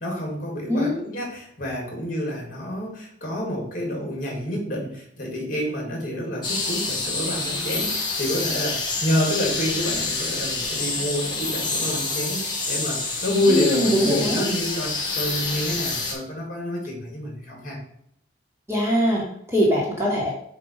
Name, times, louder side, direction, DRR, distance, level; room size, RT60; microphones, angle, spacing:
voice 1, 0.0-17.8, left 1 dB, 45° left, -1 dB, 2.3 m, -28 dB
sound 1, 6.4-16.1, left 3 dB, 25° left, 2.0 m, -27 dB
voice 2, 13.5-14.4 18.7-20.3, equal, 15° right, -4 dB, 1.6 m, -22 dB
7.6 x 2.9 x 5.4 m, 0.70 s
head